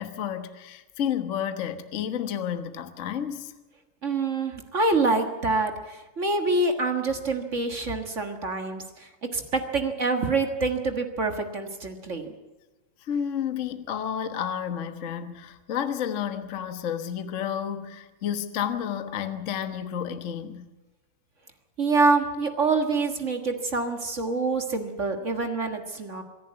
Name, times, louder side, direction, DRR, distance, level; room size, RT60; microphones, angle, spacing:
voice 1, 0.0-3.5 13.0-20.7, left 9 dB, 65° left, 0.7 m, -31 dB
voice 2, 4.0-12.3 21.8-26.2, right 3 dB, 35° right, 1.2 m, -26 dB
25.5 x 11.0 x 9.4 m
omnidirectional pair, 3.4 m